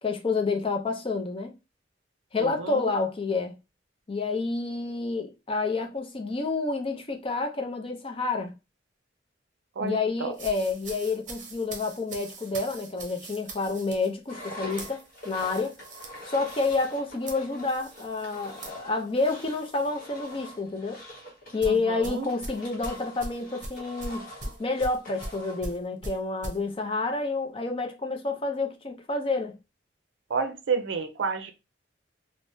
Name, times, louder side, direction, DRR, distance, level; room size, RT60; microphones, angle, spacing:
voice 1, 0.0-1.5 2.3-3.6 4.1-8.6 9.8-15.7 16.2-21.0 21.5-24.3 24.6-29.6, left 3 dB, 30° left, 0.5 m, -29 dB
voice 2, 2.4-2.9 9.8-10.4 21.7-22.3 30.3-31.5, right 5 dB, 90° right, 0.5 m, -30 dB
sound 1, 10.3-19.9 20.3-20.5 21.6-26.6, right 2 dB, 45° right, 0.7 m, -42 dB
Engine, 14.3-25.7, left 1 dB, 50° left, 1.1 m, -44 dB
3.3 x 2.1 x 2.6 m
head